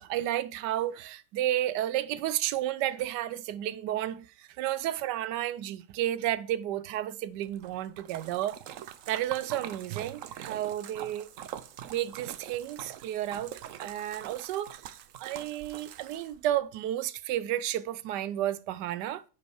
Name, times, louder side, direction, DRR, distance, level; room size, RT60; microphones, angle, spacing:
voice 1, 0.0-8.6 9.1-11.3 11.9-19.2, right 12 dB, 85° right, 1.2 m, -32 dB
Splash splatter, 7.4-16.6, right 10 dB, 65° right, 0.9 m, -44 dB
9.9 x 5.3 x 4.7 m
omnidirectional pair, 1.8 m